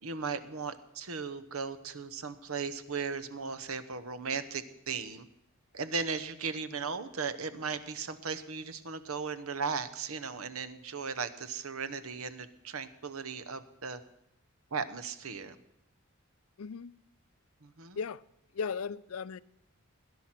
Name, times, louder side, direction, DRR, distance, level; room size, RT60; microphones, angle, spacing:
voice 1, 0.0-5.3 5.7-14.0 14.7-15.6 17.6-18.0, right 5 dB, 80° right, 1.0 m, -37 dB
voice 2, 16.6-16.9 18.0-18.2 18.5-19.4, left 5 dB, 85° left, 0.5 m, -36 dB
17.5 x 10.5 x 6.0 m
head